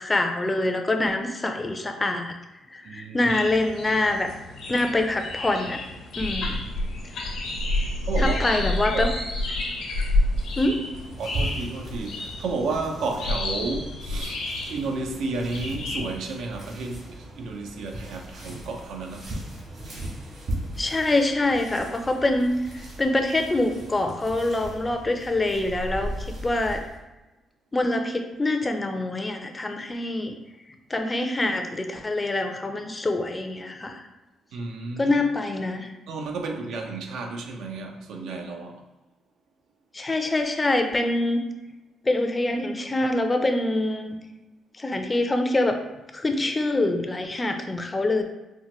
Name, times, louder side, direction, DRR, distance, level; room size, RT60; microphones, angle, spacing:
voice 1, 0.0-2.3 2.7-4.3 4.7-5.8 6.2-6.6 7.2-7.3 8.2-9.1 10.6-10.8 20.8-22.5 23.0-26.8 27.7-30.3 30.9-34.0 35.0-35.9 39.9-41.4 42.1-44.2 44.8-45.8 46.1-48.2, left 2 dB, 20° left, 5 dB, 0.4 m, -25 dB
voice 2, 2.8-3.3 8.1-8.4 8.9-9.1 11.2-14.4 14.7-19.3 34.5-35.1 36.1-38.8, right 3 dB, 80° right, 3 dB, 0.4 m, -32 dB
sound 1, 3.3-16.0, left 1 dB, 75° left, 0.7 m, -29 dB
sound 2, 10.3-27.0, right 1 dB, 60° right, 1.4 m, -38 dB
4.3 x 2.1 x 2.9 m, 1.0 s
cardioid pair, 90°, 0 cm